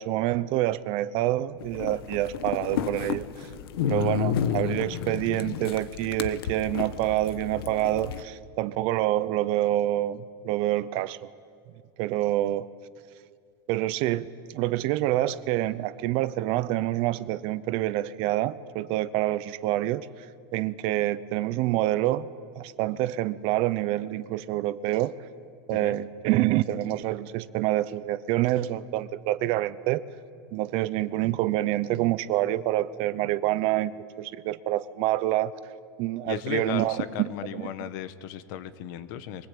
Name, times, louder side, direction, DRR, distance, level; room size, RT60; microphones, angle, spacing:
voice 1, 0.0-3.5 3.8-11.3 12.0-12.7 13.7-20.1 20.5-22.3 22.6-25.1 25.7-30.0 30.5-33.9 34.2-35.5 36.0-37.7, right 15 dB, 50° right, 16 dB, 0.8 m, -27 dB
sound 1, 1.6-8.2, left 9 dB, 90° left, 1.2 m, -31 dB
voice 2, 36.3-39.5, left 10 dB, 60° left, 12 dB, 1.3 m, -35 dB
23.0 x 20.0 x 8.5 m, 2.3 s
supercardioid pair, 145°, 12 cm